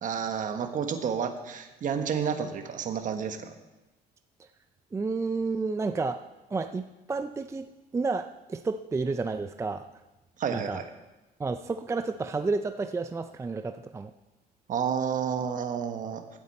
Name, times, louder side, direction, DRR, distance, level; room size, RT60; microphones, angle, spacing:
voice 1, 0.0-3.6 10.4-10.8 14.7-16.2, right 7 dB, 50° right, 7 dB, 1.3 m, -30 dB
voice 2, 4.9-6.2 6.5-7.7 7.9-9.9 10.5-10.8 11.4-14.1, right 4 dB, 15° right, 9 dB, 0.4 m, -31 dB
15.5 x 8.0 x 4.2 m, 1.1 s
cardioid pair, 110°, 17 cm